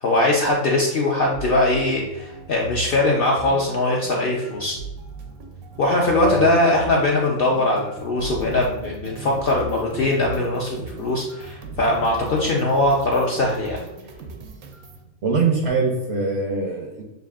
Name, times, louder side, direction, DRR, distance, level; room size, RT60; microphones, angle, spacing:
voice 1, 0.0-4.8 5.8-13.8, left 2 dB, 60° left, -2 dB, 0.6 m, -21 dB
sound 1, 1.3-15.0, right 4 dB, 80° right, 1.0 m, -38 dB
voice 2, 15.2-17.0, right 4 dB, 65° right, 1 dB, 0.7 m, -22 dB
6.4 x 2.5 x 2.3 m, 1.0 s
omnidirectional pair, 1.5 m